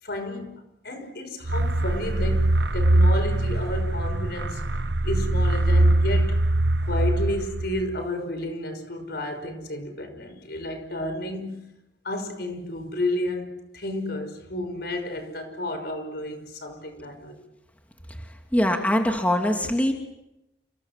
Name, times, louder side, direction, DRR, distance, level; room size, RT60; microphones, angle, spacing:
voice 1, 0.0-6.4 6.8-11.7 12.0-17.5, left 1 dB, 65° left, 5.7 m, -32 dB
sound 1, 1.4-8.0, right 1 dB, 80° right, 1.2 m, -22 dB
voice 2, 18.5-19.9, left 1 dB, 10° left, 2.7 m, -22 dB
29.5 x 26.0 x 7.5 m
head